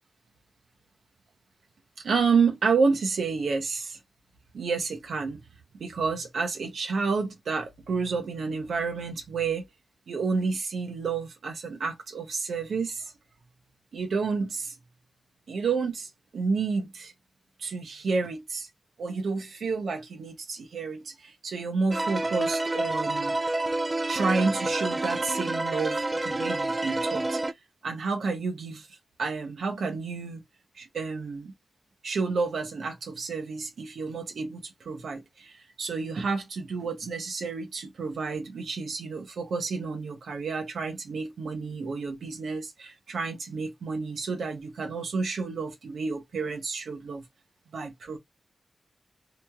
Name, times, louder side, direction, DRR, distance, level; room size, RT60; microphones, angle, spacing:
voice 1, 2.0-4.0 4.5-5.4 5.8-9.7 10.1-13.1 13.9-14.7 15.5-17.1 17.6-18.7 19.0-23.4 24.1-27.4 27.8-30.4 30.7-31.5 32.0-47.2 47.7-48.2, right 4 dB, 90° right, 0.7 m, -30 dB
sound 1, 21.9-27.5, right 2 dB, 25° right, 0.4 m, -28 dB
3.0 x 2.8 x 2.2 m
wide cardioid pair, 80°, 0 cm